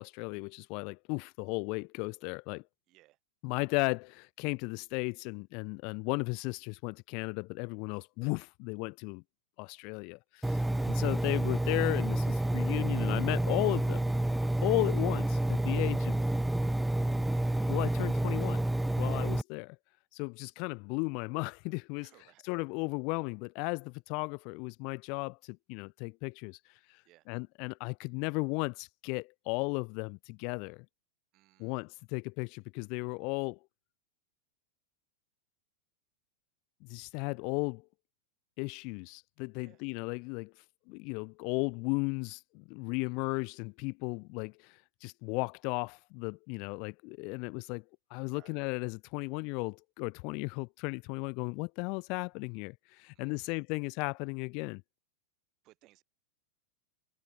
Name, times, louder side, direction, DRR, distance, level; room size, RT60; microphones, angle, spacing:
voice 1, 0.0-2.6 3.4-9.2 9.6-14.0 14.6-16.2 17.7-18.6 19.0-19.7 20.1-22.1 22.4-26.6 26.9-27.0 27.3-30.9 31.6-33.6 36.8-37.8 38.6-40.5 40.9-47.8 48.1-54.8, left 33 dB, 45° left, 0.4 m, -35 dB
voice 2, 2.9-3.2 10.6-10.9 14.6-14.7 19.1-19.3 22.0-22.5 27.0-27.3 31.3-31.8 39.6-39.8 43.0-43.4 48.3-48.6 53.1-53.6 55.6-56.0, right 18 dB, 40° right, 6.8 m, -63 dB
Engine, 10.4-19.4, right 1 dB, 5° right, 0.6 m, -29 dB
figure-of-eight pair, 90°, 0 cm